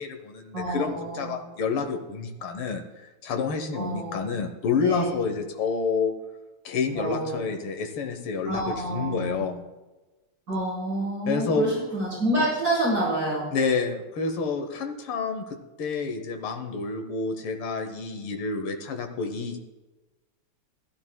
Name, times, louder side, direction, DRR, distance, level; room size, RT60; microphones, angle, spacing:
voice 1, 0.0-2.8 3.2-6.1 6.7-9.6 11.3-11.7 13.5-19.6, left 5 dB, 90° left, 5 dB, 1.9 m, -29 dB
voice 2, 0.5-1.3 3.7-4.3 4.8-5.2 6.9-7.4 8.4-9.4 10.5-13.5, right 1 dB, 45° right, -8 dB, 4.9 m, -28 dB
15.5 x 13.5 x 2.3 m, 1.1 s
omnidirectional pair, 2.3 m